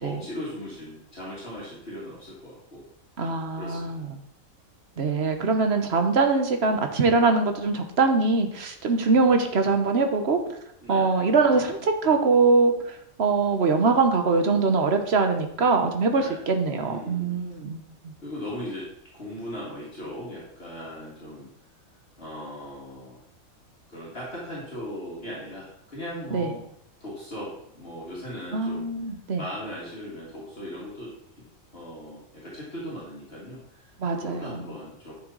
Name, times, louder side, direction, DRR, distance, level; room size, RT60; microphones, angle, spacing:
voice 1, 0.0-2.8 3.2-3.9 10.8-11.1 16.1-16.4 16.8-17.4 18.2-18.9 19.1-21.5 22.2-23.2 23.9-26.6 27.0-28.8 29.4-31.1 31.7-35.1, equal, 45° left, -7 dB, 2.4 m, -38 dB
voice 2, 3.2-4.2 5.0-10.4 10.9-18.1 26.3-26.5 28.5-29.4 34.0-34.6, right 4 dB, 55° right, 6 dB, 1.3 m, -23 dB
10.5 x 6.3 x 4.0 m, 0.74 s
omnidirectional pair, 1.4 m